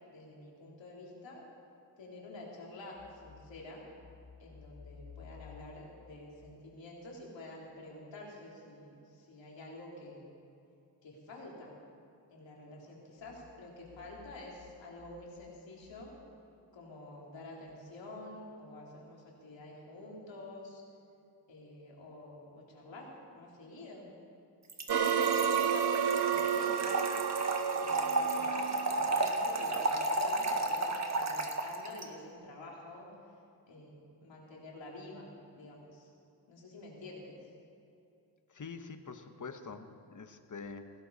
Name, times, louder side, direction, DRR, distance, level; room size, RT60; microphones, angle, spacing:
voice 1, 0.1-1.4 2.0-3.8 4.4-10.4 11.0-11.7 12.3-16.1 16.7-20.8 21.5-24.1 25.2-26.0 26.2-27.2 27.8-33.1 33.7-35.3 35.5-36.1 36.5-37.3, left 2 dB, 85° left, -3 dB, 3.8 m, -49 dB
Trickle dribble / Fill (with liquid), 24.7-32.1, right 2 dB, 40° right, 1.7 m, -33 dB
sound 1, 24.9-29.9, right 7 dB, 65° right, 0.9 m, -31 dB
voice 2, 38.5-40.9, left 4 dB, 45° left, 8 dB, 1.3 m, -45 dB
19.0 x 16.0 x 4.2 m, 2.7 s
cardioid pair, 60°, 44 cm